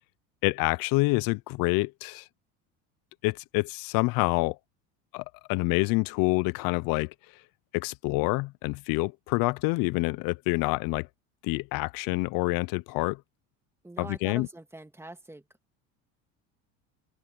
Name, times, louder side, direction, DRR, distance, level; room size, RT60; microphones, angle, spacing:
voice 1, 0.4-2.3 3.2-4.6 5.1-7.1 7.7-11.1 11.4-13.2 14.0-14.5, left 24 dB, 65° left, 0.7 m, -27 dB
voice 2, 13.8-15.4, right 2 dB, 5° right, 1.9 m, -43 dB
open air
supercardioid pair, 100°, 37 cm